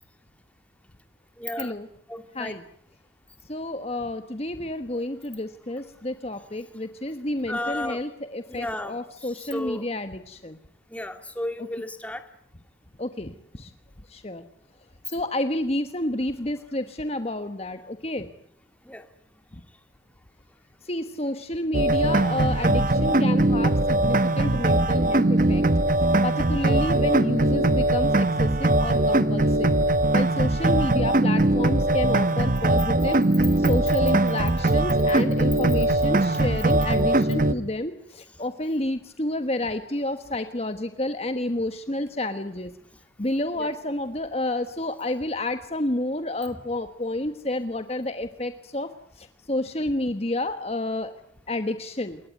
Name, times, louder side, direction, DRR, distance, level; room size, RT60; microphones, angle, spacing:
voice 1, 1.4-1.7 2.1-2.5 7.5-8.0 8.5-9.8 10.9-12.2 18.9-19.1 31.9-32.0 43.6-43.7, left 1 dB, 5° left, 8 dB, 2.3 m, -33 dB
voice 2, 3.5-10.6 11.6-11.7 13.0-13.7 14.1-14.4 15.1-18.3 20.8-25.6 26.2-29.7 30.1-33.2 33.6-42.7 43.2-48.9 49.2-51.1 51.5-52.2, left 1 dB, 35° left, 9 dB, 1.3 m, -30 dB
sound 1, 21.7-37.5, right 1 dB, 45° right, 1.2 m, -21 dB
28.0 x 22.5 x 9.3 m, 0.65 s
head